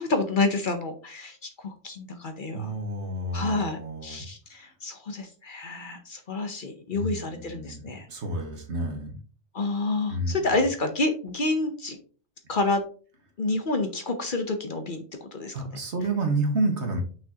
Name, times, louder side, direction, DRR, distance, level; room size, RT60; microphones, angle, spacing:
voice 1, 0.0-1.3 1.8-2.7 3.3-8.0 9.5-12.0 12.5-12.8 13.4-15.0 15.3-15.5, left 3 dB, 50° left, 6 dB, 0.9 m, -28 dB
voice 2, 2.5-4.3 6.9-7.8 8.1-9.2 10.1-10.6 15.5-17.0, right 2 dB, 65° right, 3 dB, 1.7 m, -30 dB
6.1 x 5.7 x 2.8 m, 0.40 s
omnidirectional pair, 1.2 m